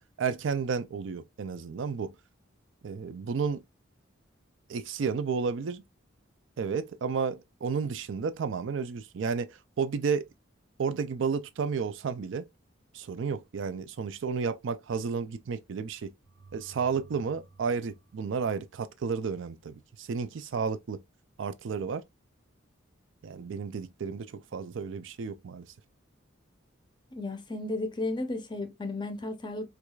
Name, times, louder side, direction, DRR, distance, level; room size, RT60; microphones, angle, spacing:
voice 1, 0.0-2.2 2.8-3.6 4.7-5.8 6.6-10.3 10.8-12.5 12.9-16.1 16.5-21.0 21.4-22.0 23.2-25.7, right 5 dB, 65° right, 0.4 m, -32 dB
sound 1, 16.2-19.1, right 4 dB, 90° right, 1.2 m, -56 dB
voice 2, 27.1-29.7, left 2 dB, 20° left, 0.5 m, -34 dB
4.6 x 2.3 x 2.3 m
head